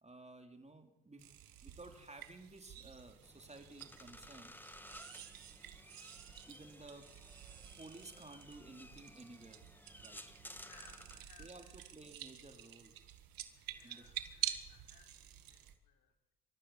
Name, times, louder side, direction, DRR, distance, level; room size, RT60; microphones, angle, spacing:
voice 1, 0.0-1.3 1.6-4.6 6.5-7.1 7.8-9.6 10.0-10.4 11.4-13.0 13.8-14.1, right 2 dB, 20° right, 6 dB, 3.3 m, -55 dB
sound 1, 1.2-15.8, right 12 dB, 75° right, 1.8 m, -49 dB
sound 2, 3.2-11.3, left 1 dB, 5° left, 1.7 m, -56 dB
voice 2, 10.6-11.9 13.5-16.3, left 8 dB, 75° left, 2 dB, 4.6 m, -64 dB
26.0 x 13.5 x 7.3 m, 1.0 s
supercardioid pair, 65°, 35 cm